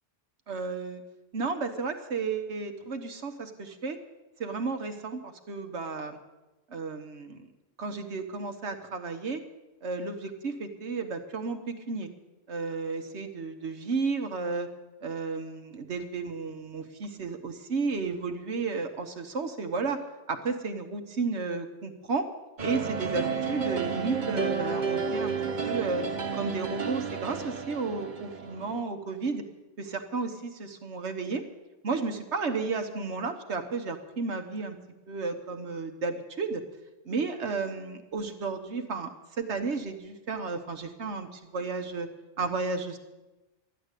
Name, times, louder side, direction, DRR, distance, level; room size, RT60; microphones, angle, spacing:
voice 1, 0.5-1.0 1.3-4.0 4.4-6.2 6.7-7.4 7.8-9.4 9.8-12.1 12.5-14.7 15.0-20.0 20.3-22.3 22.6-25.4 25.6-26.0 26.3-29.4 29.8-31.4 31.8-34.8 35.1-36.6 37.0-39.1 39.4-42.1 42.4-43.0, right 4 dB, 75° right, 7 dB, 1.4 m, -33 dB
sound 1, 22.6-28.8, right 5 dB, 45° right, 1.0 m, -31 dB
13.0 x 10.5 x 8.2 m, 1.1 s
omnidirectional pair, 1.2 m